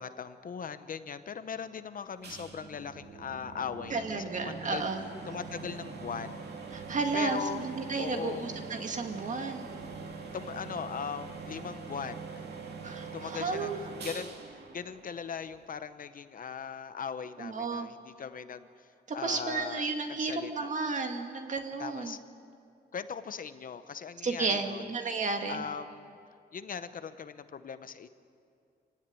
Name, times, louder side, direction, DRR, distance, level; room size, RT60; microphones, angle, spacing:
voice 1, 0.0-4.0 4.4-4.8 5.3-6.5 7.1-7.6 8.0-8.5 10.3-12.4 13.1-13.7 14.0-14.3 14.7-18.9 19.1-19.9 20.2-20.7 21.8-22.2 22.9-24.8 25.5-26.2 26.5-28.1, left 7 dB, 50° left, 11 dB, 0.8 m, -39 dB
sound 1, 2.2-15.7, right 4 dB, 65° right, 2.6 m, -43 dB
voice 2, 3.9-5.0 6.7-9.7 12.8-13.8 17.4-17.9 19.1-22.2 24.2-25.6, right 4 dB, 45° right, 4 dB, 2.0 m, -33 dB
26.5 x 17.0 x 9.6 m, 2.4 s
wide cardioid pair, 165°, 18 cm